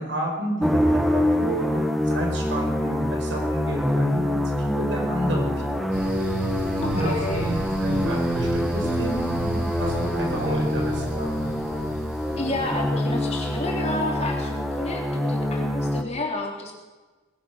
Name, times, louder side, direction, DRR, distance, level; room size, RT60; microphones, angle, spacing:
voice 1, 0.0-5.9 6.8-11.5, right 1 dB, 85° right, 1 dB, 4.8 m, -31 dB
sound 1, 0.6-16.0, left 1 dB, ahead, 1.0 m, -25 dB
sound 2, 5.9-13.5, right 1 dB, 50° right, 5.3 m, -32 dB
voice 2, 6.8-7.6 12.4-16.7, left 2 dB, 35° left, 0 dB, 3.5 m, -30 dB
20.5 x 11.0 x 6.5 m, 1.2 s
head